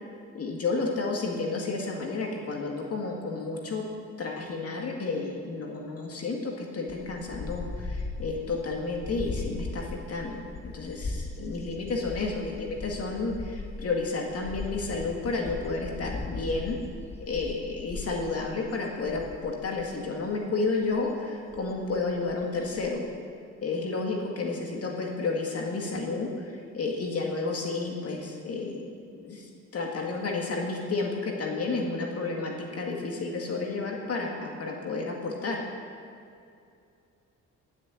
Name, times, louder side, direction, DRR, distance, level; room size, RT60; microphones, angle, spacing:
voice 1, 0.3-3.8 4.2-16.8 17.2-23.0 23.6-35.6, left 3 dB, 50° left, 0 dB, 1.9 m, -31 dB
sound 1, 6.9-20.3 20.8-21.0 21.3-23.0, left 3 dB, 20° left, 1.0 m, -39 dB
11.0 x 6.7 x 9.1 m, 2.5 s
cardioid pair, 90°, 30 cm